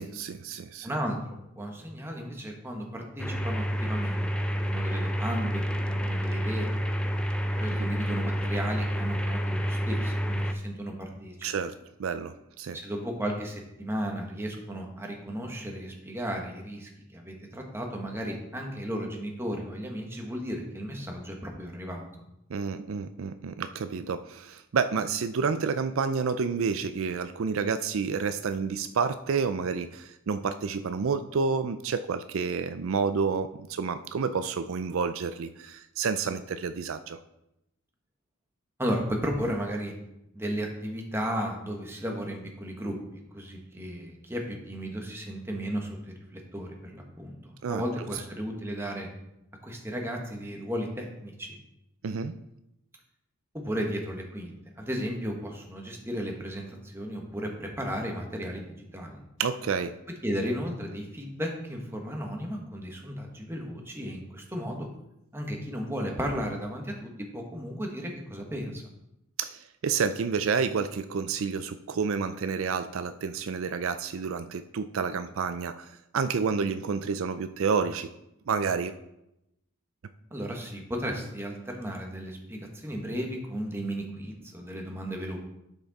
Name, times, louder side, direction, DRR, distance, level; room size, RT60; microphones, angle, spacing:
voice 1, 0.0-0.9 7.8-7.9 11.4-11.7 12.0-12.8 22.5-37.2 47.6-47.8 52.0-52.3 59.4-60.0 69.4-78.1 78.5-78.9, right 5 dB, 70° right, 10 dB, 0.4 m, -29 dB
voice 2, 0.8-6.7 7.5-11.5 12.7-22.1 38.8-39.9 40.3-43.0 43.3-49.1 49.6-51.6 53.5-59.2 60.2-64.9 65.3-68.8 80.3-85.4, equal, 10° right, 1 dB, 1.4 m, -34 dB
sound 1, 3.2-10.5, equal, 5° left, 0.5 m, -29 dB
10.5 x 6.0 x 4.1 m, 0.86 s
head